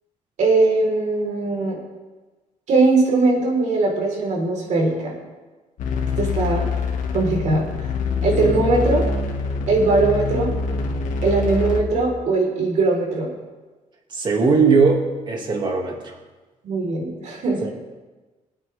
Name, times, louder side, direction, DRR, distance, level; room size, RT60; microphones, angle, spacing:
voice 1, 0.4-1.8 2.7-5.1 6.2-6.7 7.1-7.7 8.2-9.0 9.7-10.5 11.2-13.3 16.6-17.6, right 3 dB, 65° right, -1 dB, 4.3 m, -20 dB
sound 1, 5.8-11.8, left 4 dB, 80° left, 1.9 m, -25 dB
voice 2, 14.1-16.1 17.6-17.7, right 4 dB, 35° right, 1 dB, 2.3 m, -19 dB
24.5 x 9.1 x 3.6 m, 1.2 s
cardioid pair, 165°, 13 cm